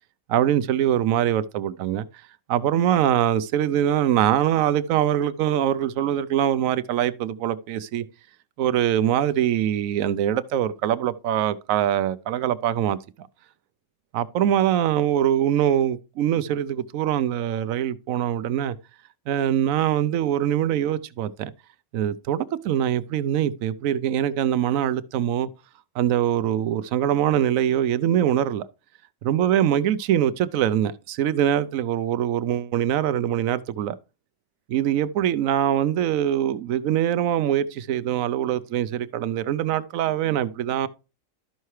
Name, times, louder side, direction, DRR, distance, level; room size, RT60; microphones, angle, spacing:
voice 1, 0.3-2.1 2.5-8.0 8.6-13.3 14.1-18.7 19.3-21.5 21.9-25.5 26.0-28.7 29.2-34.0 34.7-40.9, right 10 dB, 80° right, 1.0 m, -23 dB
13.0 x 5.6 x 3.2 m
omnidirectional pair, 1.4 m